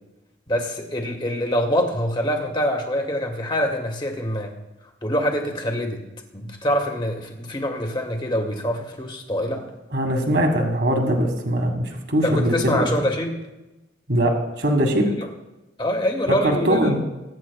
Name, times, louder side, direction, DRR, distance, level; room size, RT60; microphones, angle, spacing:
voice 1, 0.5-4.5 5.0-6.0 6.3-9.6 12.2-13.4 15.1-15.3 15.8-16.9, equal, 25° left, 3 dB, 1.4 m, -25 dB
voice 2, 9.9-12.9 14.1-15.1 16.4-17.0, right 1 dB, 65° right, 3 dB, 1.6 m, -21 dB
22.0 x 9.4 x 2.3 m, 1.0 s
head